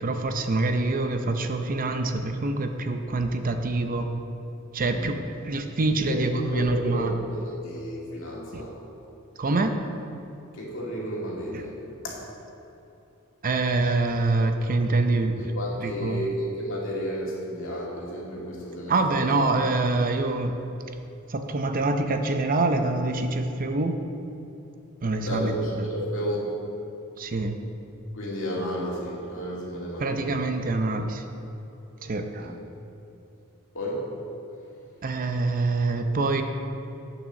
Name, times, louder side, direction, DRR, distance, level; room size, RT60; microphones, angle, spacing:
voice 1, 0.0-4.1 4.7-5.2 5.4-7.1 8.5-8.6 9.4-9.7 13.4-15.5 15.8-16.2 18.9-20.6 21.3-24.0 25.0-25.5 27.2-27.6 30.0-31.2 32.0-32.5 35.0-36.4, right 2 dB, 40° right, 6 dB, 0.6 m, -25 dB
voice 2, 4.8-5.2 6.0-8.8 10.5-12.2 15.4-19.3 25.2-26.6 28.1-30.4 32.4-32.6 33.7-34.2, equal, 65° left, -4 dB, 2.4 m, -32 dB
9.1 x 7.1 x 6.4 m, 2.9 s
head